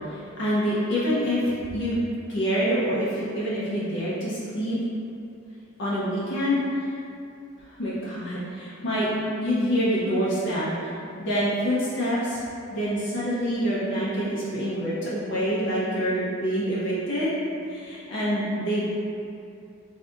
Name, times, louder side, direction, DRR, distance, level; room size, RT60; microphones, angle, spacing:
voice 1, 0.1-1.9 2.3-4.8 5.8-6.6 7.8-9.1 9.4-10.9 11.2-12.4 12.7-17.3 17.7-18.9, equal, 60° left, -8 dB, 0.5 m, -26 dB
3.4 x 2.7 x 2.4 m, 2.6 s
head